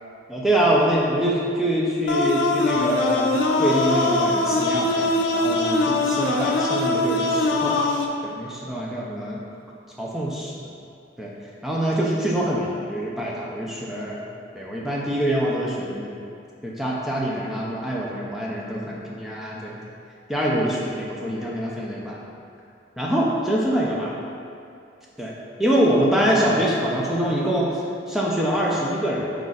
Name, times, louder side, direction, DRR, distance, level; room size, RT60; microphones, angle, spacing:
voice 1, 0.3-7.8 8.2-9.4 10.0-10.5 11.2-11.3 11.6-14.2 14.5-16.1 16.6-19.8 20.3-22.2 23.0-24.1 25.2-25.3 25.6-27.7 28.1-29.3, right 1 dB, ahead, -5 dB, 0.4 m, -24 dB
sound 1, 2.1-8.1, left 2 dB, 85° left, 0.4 m, -22 dB
4.6 x 2.4 x 4.0 m, 2.4 s
head